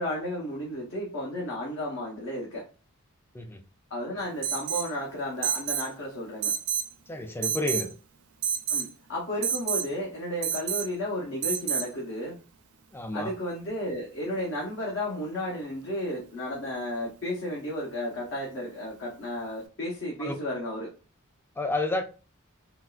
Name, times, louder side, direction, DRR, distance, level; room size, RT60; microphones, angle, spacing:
voice 1, 0.0-2.6 3.9-6.5 8.7-12.4 13.1-20.9, left 1 dB, 60° left, 0.8 m, -33 dB
Alarm, 4.4-4.9 5.4-5.9 6.4-6.9 7.4-7.9 8.4-8.9 9.4-9.9 10.4-10.9 11.4-11.9, right 8 dB, 80° right, 0.5 m, -29 dB
voice 2, 7.1-7.9 12.9-13.3 20.2-20.4 21.6-22.0, left 2 dB, 10° left, 0.3 m, -30 dB
3.6 x 2.3 x 2.3 m
head